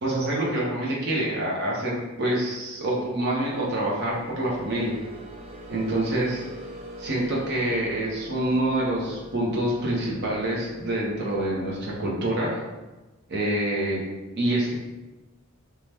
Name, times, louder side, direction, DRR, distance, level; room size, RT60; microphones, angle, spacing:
voice 1, 0.0-4.9 5.7-6.4 7.0-12.6 13.3-14.0 14.3-14.7, right 1 dB, 50° right, -4 dB, 0.8 m, -26 dB
sound 1, 3.3-12.3, right 1 dB, 30° right, 0.4 m, -43 dB
2.8 x 2.3 x 3.3 m, 1.1 s
head